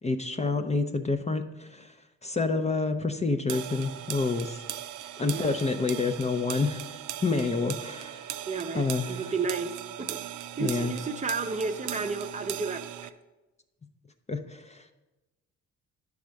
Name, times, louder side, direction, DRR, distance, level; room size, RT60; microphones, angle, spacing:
voice 1, 0.0-2.0 2.2-4.6 5.2-8.4 8.7-9.2 10.6-10.9 14.3-14.9, left 3 dB, 20° left, 6 dB, 0.5 m, -28 dB
sound 1, 3.5-13.1, right 12 dB, 85° right, 0.5 m, -39 dB
voice 2, 8.5-10.2 10.6-13.1, right 4 dB, 25° right, 7 dB, 0.6 m, -32 dB
10.0 x 3.5 x 6.3 m, 1.1 s
cardioid pair, 90°, 30 cm